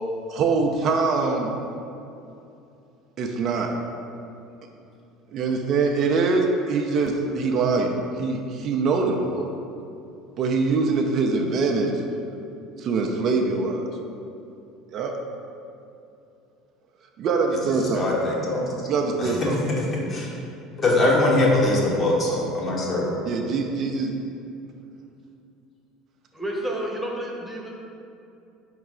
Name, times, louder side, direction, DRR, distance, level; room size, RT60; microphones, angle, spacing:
voice 1, 0.3-1.5 3.2-3.7 5.3-9.5 10.4-11.9 12.8-13.9 14.9-15.1 17.2-18.1 18.9-19.6 23.2-24.1, right 4 dB, 50° right, 2 dB, 0.4 m, -23 dB
voice 2, 17.7-18.6 19.2-19.3 19.9-20.3 20.8-23.1, left 2 dB, 40° left, -4 dB, 1.1 m, -22 dB
voice 3, 26.3-27.7, right 1 dB, 10° right, -1 dB, 0.9 m, -30 dB
4.6 x 3.1 x 3.7 m, 2.7 s
hypercardioid pair, 75°, 0 cm